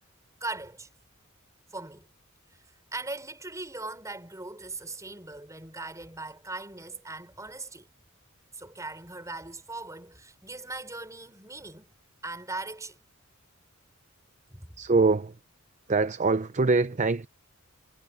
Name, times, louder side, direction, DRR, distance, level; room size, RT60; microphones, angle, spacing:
voice 1, 0.4-0.9 1.7-2.1 2.5-2.6 2.9-7.9 8.5-11.9 12.2-13.0 14.5-14.8, right 2 dB, 15° right, 6.5 m, -39 dB
voice 2, 14.8-15.4 15.9-17.3, right 3 dB, 35° right, 0.6 m, -23 dB
head